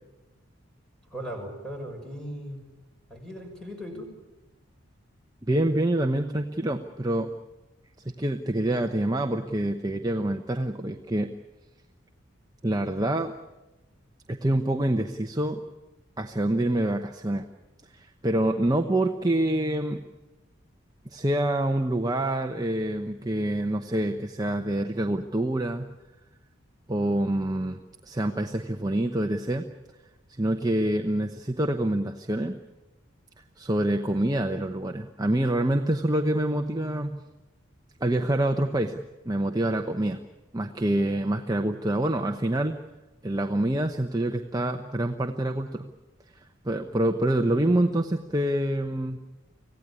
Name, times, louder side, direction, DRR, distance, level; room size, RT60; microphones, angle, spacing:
voice 1, 1.1-2.6 3.1-4.1, equal, 5° left, 1 dB, 6.1 m, -37 dB
voice 2, 5.5-7.3 8.0-11.3 12.6-13.3 14.3-15.6 16.2-17.4 17.9-20.0 21.1-26.0 26.9-29.7 30.3-32.6 33.6-37.3 38.0-40.2 40.5-42.8 43.2-45.9 46.6-49.2, right 1 dB, 20° right, 5 dB, 0.9 m, -26 dB
25.5 x 17.0 x 9.8 m, 1.1 s
head